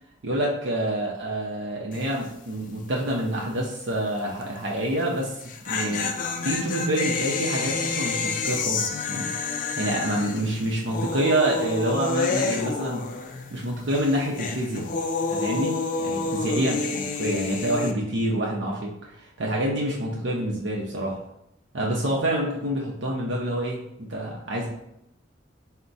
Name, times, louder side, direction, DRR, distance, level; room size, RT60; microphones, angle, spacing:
voice 1, 0.2-6.2 6.4-9.3 9.8-13.0 13.5-14.9 15.3-21.2 21.7-24.7, right 1 dB, 70° right, -2 dB, 0.7 m, -27 dB
sound 1, 1.9-2.3 2.5-2.6 5.3-13.6 13.9-17.9, left 4 dB, 45° left, 0.4 m, -29 dB
4.6 x 2.1 x 3.9 m, 0.80 s
head